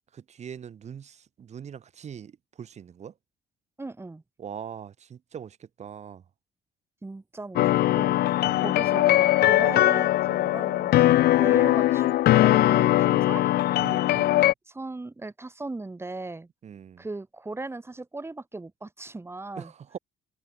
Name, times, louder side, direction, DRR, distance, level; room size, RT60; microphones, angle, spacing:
voice 1, 0.1-3.1 4.4-6.2 8.4-8.7 13.8-14.5 16.6-17.0 19.6-20.0, right 8 dB, 40° right, 1.9 m, -42 dB
voice 2, 3.8-4.2 7.0-13.6 14.7-16.5 17.0-19.7, right 2 dB, 15° right, 3.1 m, -38 dB
sound 1, 7.6-14.5, left 15 dB, 65° left, 0.8 m, -21 dB
cardioid pair, 110°, 17 cm